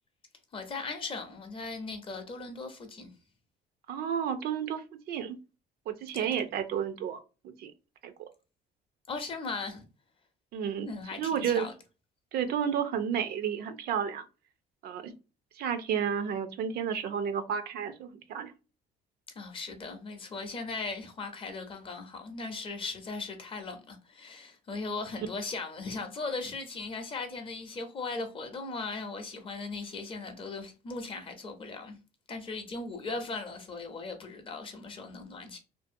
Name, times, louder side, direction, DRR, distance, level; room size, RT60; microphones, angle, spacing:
voice 1, 0.5-3.1 6.1-6.3 9.1-9.8 10.9-11.7 19.3-32.0 32.3-35.6, left 3 dB, 30° left, 0.6 m, -38 dB
voice 2, 3.9-5.4 5.9-7.2 7.4-7.7 8.0-8.1 10.5-10.9 11.2-11.7 12.3-14.2 14.8-15.1 15.6-18.5, right 8 dB, 60° right, 0.4 m, -31 dB
2.6 x 2.5 x 2.5 m
cardioid pair, 140°, 18 cm